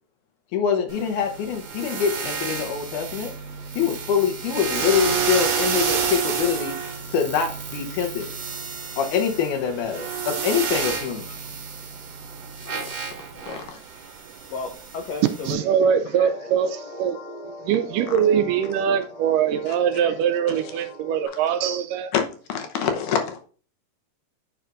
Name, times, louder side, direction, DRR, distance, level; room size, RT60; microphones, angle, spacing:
voice 1, 0.5-3.3 3.8-6.8 7.1-8.3 9.0-11.4 12.7-12.9 13.5-13.8 18.1-18.2 19.7-19.8 22.1-23.4, left 7 dB, 70° left, 5 dB, 2.3 m, -25 dB
sound 1, 0.9-15.5, right 6 dB, 55° right, 2.1 m, -30 dB
voice 2, 13.3-13.7 14.5-16.5, left 4 dB, 90° left, 4 dB, 1.4 m, -35 dB
voice 3, 15.5-17.2 17.6-22.1, right 8 dB, 80° right, 8 dB, 2.1 m, -22 dB
sound 2, 16.2-21.3, equal, 20° left, 1.4 m, -40 dB
9.2 x 5.5 x 2.5 m, 0.41 s
omnidirectional pair, 3.9 m